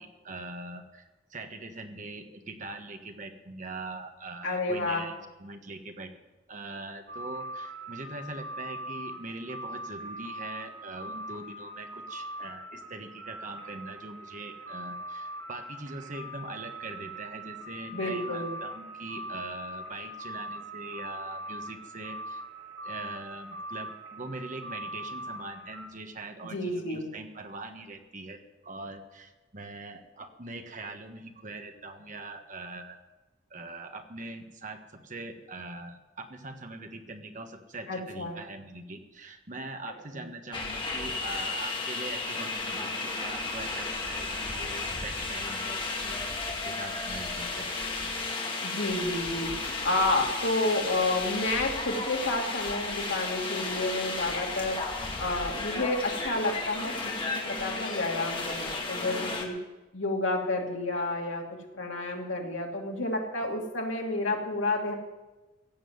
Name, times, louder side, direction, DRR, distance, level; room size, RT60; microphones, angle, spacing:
voice 1, 0.0-6.1 6.5-22.4 22.8-33.0 33.5-47.7 48.0-48.1, right 2 dB, 40° right, 6 dB, 1.4 m, -42 dB
voice 2, 4.4-5.0 17.9-18.5 26.5-27.1 37.9-38.4 40.1-40.2 48.6-54.8 55.2-57.1 57.4-59.6 59.9-61.5 61.7-64.9, left 2 dB, 80° left, 0 dB, 2.7 m, -30 dB
sound 1, 7.1-25.9, right 1 dB, 80° right, 2.7 m, -41 dB
sound 2, 40.5-59.5, left 3 dB, 25° left, 2.2 m, -33 dB
16.0 x 7.7 x 9.4 m, 1.1 s
head